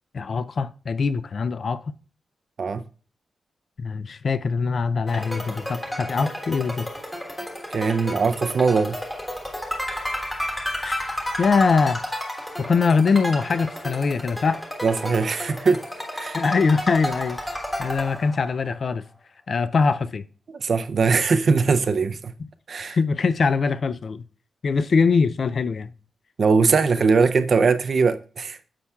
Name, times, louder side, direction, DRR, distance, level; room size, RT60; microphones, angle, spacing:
voice 1, 0.1-1.9 3.8-6.9 10.8-12.0 12.6-14.6 16.3-17.4 17.8-19.0 19.5-20.2 22.9-24.2 24.6-25.9, left 5 dB, 45° left, 0.3 m, -22 dB
sound 1, 5.1-18.7, equal, 10° left, 1.3 m, -32 dB
voice 2, 7.7-9.0 14.8-15.8 16.1-16.4 20.5-22.3 22.7-23.0 26.4-28.6, right 4 dB, 45° right, 0.4 m, -21 dB
9.7 x 7.1 x 2.3 m
wide cardioid pair, 180°, 0 cm